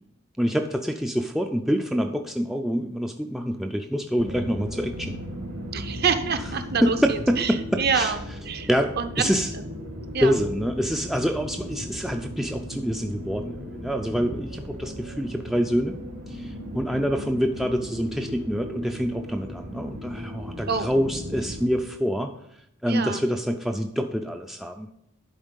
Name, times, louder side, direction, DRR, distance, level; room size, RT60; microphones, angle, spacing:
voice 1, 0.4-5.2 6.8-8.2 8.7-9.5 10.2-16.0 16.3-22.3 22.8-24.9, equal, ahead, 5 dB, 0.3 m, -26 dB
sound 1, 4.2-21.7, equal, 70° right, 2.0 m, -37 dB
voice 2, 5.7-8.2 8.5-8.7 9.0-9.3 10.1-10.3 20.7-20.9 22.9-23.2, right 6 dB, 45° right, 9 dB, 0.6 m, -26 dB
11.0 x 4.4 x 5.3 m, 0.77 s
head